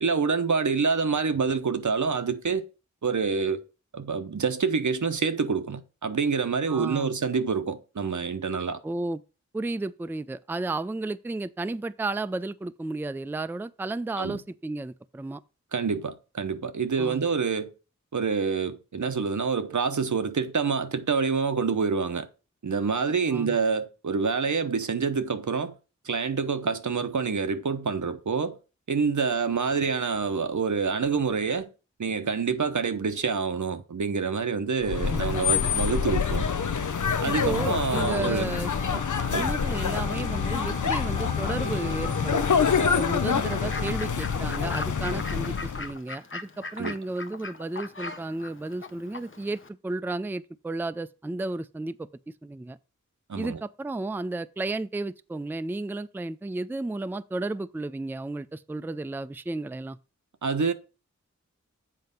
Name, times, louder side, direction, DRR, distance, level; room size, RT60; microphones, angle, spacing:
voice 1, 0.0-2.6 3.0-3.6 3.9-8.8 14.2-14.4 15.7-17.7 18.1-22.3 22.6-25.7 26.0-28.6 28.9-31.7 32.0-36.5 37.2-38.5 39.3-39.5 46.8-47.0 53.3-53.6 60.4-60.7, right 5 dB, 80° right, 0.8 m, -27 dB
voice 2, 6.7-7.1 8.8-9.2 9.5-15.4 17.0-17.2 23.3-23.6 35.1-35.3 37.2-39.0 39.3-42.5 42.8-52.1 52.4-52.8 53.4-60.0, right 2 dB, 5° right, 0.4 m, -33 dB
sound 1, 34.8-45.9, left 6 dB, 90° left, 0.6 m, -26 dB
Wind instrument woodwind instrument, 38.5-44.2, equal, 25° left, 1.5 m, -40 dB
Fowl / Bird, 43.5-49.7, left 3 dB, 45° left, 0.8 m, -40 dB
7.7 x 4.6 x 5.3 m
wide cardioid pair, 55°, 29 cm